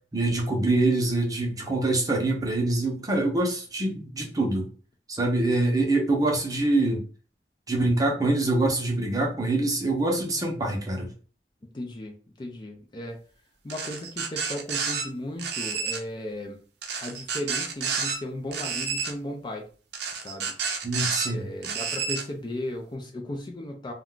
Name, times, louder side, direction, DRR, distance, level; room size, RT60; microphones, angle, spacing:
voice 1, 0.1-4.7 5.1-7.0 7.7-11.1 20.8-21.4, right 2 dB, 20° right, 0 dB, 0.7 m, -25 dB
voice 2, 5.2-5.6 11.7-13.2 13.6-16.6 17.0-19.7 20.2-20.5 21.3-23.9, left 1 dB, 25° left, 2 dB, 0.4 m, -36 dB
sound 1, 13.7-15.0 15.4-16.0 16.8-18.2 18.5-19.1 19.9-21.3 21.6-22.2, right 5 dB, 65° right, 0.6 m, -30 dB
2.3 x 2.2 x 3.6 m, 0.39 s
head